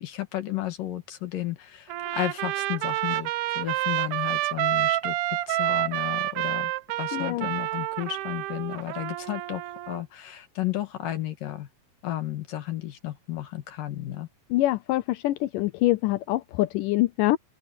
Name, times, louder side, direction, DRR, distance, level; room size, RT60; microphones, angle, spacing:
voice 1, 0.0-6.7 7.0-11.7 12.0-14.3, left 14 dB, 65° left, 3.3 m, -33 dB
Trumpet, 1.9-10.0, right 16 dB, 85° right, 1.8 m, -28 dB
voice 2, 7.1-7.5 14.5-17.4, left 17 dB, 80° left, 1.9 m, -25 dB
open air
omnidirectional pair, 4.3 m